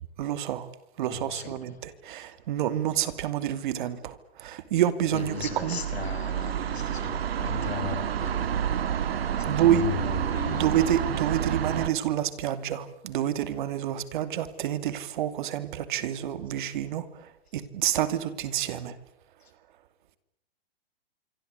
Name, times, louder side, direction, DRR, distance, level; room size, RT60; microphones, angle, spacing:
voice 1, 0.2-0.7 1.0-5.8 9.5-9.9 10.5-18.9, right 11 dB, 50° right, 12 dB, 2.8 m, -28 dB
voice 2, 1.1-1.8 5.1-8.6 9.4-10.8, left 6 dB, 90° left, 10 dB, 6.0 m, -36 dB
sound 1, 5.2-11.9, right 9 dB, 75° right, 2.3 m, -29 dB
26.0 x 24.0 x 8.2 m, 0.79 s
hypercardioid pair, 145°, 30 cm